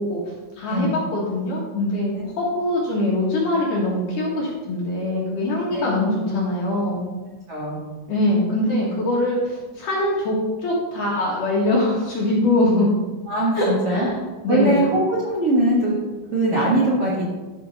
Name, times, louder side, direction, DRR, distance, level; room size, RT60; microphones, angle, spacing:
voice 1, 0.0-7.0 8.1-12.9 13.5-14.1 14.4-14.8, left 1 dB, 60° left, -4 dB, 2.5 m, -23 dB
voice 2, 0.7-1.0 2.2-2.3 5.7-5.9 7.5-7.8 13.3-14.1 14.5-15.9 16.3-17.2, right 1 dB, 50° right, -7 dB, 1.9 m, -21 dB
13.5 x 6.0 x 4.0 m, 1.2 s
omnidirectional pair, 5.2 m